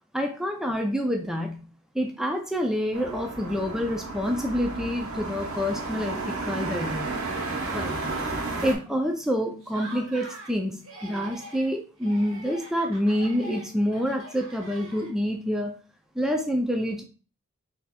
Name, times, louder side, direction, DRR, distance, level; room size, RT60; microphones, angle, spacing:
voice 1, 0.1-1.6 1.9-7.1 7.7-7.9 8.6-15.7 16.2-17.0, equal, ahead, 2 dB, 0.4 m, -27 dB
sound 1, 2.9-8.7, right 3 dB, 85° right, 1.1 m, -32 dB
Laughter, 9.6-10.6 10.8-11.7 12.0-15.3, right 1 dB, 65° right, 1.5 m, -44 dB
6.2 x 2.8 x 2.3 m, 0.37 s
head